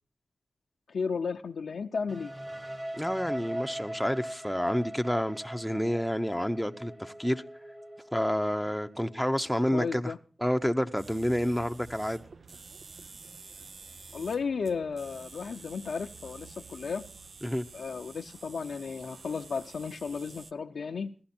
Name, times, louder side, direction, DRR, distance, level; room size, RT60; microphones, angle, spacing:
voice 1, 0.9-2.3 9.7-10.2 14.1-17.1 17.7-21.1, left 5 dB, 75° left, 0.7 m, -34 dB
sound 1, 2.1-9.8, right 1 dB, 25° right, 2.1 m, -41 dB
voice 2, 3.0-7.4 8.1-10.1 10.4-12.2 17.4-17.6, equal, ahead, 0.9 m, -29 dB
sound 2, 11.0-20.5, right 4 dB, 65° right, 0.7 m, -49 dB
16.0 x 11.5 x 4.3 m
cardioid pair, 45°, 0 cm